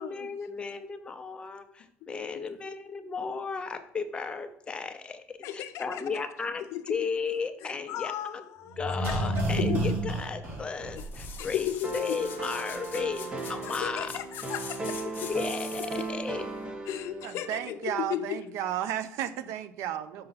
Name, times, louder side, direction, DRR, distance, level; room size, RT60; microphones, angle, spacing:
voice 1, 0.0-6.6 6.9-8.5 8.8-13.2 13.5-14.1 15.3-16.4, left 5 dB, 20° left, 0.6 m, -35 dB
voice 2, 5.4-6.0 6.7-6.9 7.6-10.0 11.4-12.3 12.9-13.0 13.6-15.3 16.9-18.4, left 11 dB, 65° left, 0.5 m, -35 dB
sound 1, 8.7-11.6 11.9-12.0, right 2 dB, 45° right, 1.8 m, -30 dB
sound 2, 10.9-16.2 16.6-16.7, left 7 dB, 40° left, 1.0 m, -44 dB
sound 3, 11.8-17.7, right 2 dB, 20° right, 0.9 m, -36 dB
voice 3, 17.2-20.3, right 10 dB, 70° right, 0.5 m, -33 dB
5.5 x 5.4 x 4.0 m
cardioid pair, 150°, 5 cm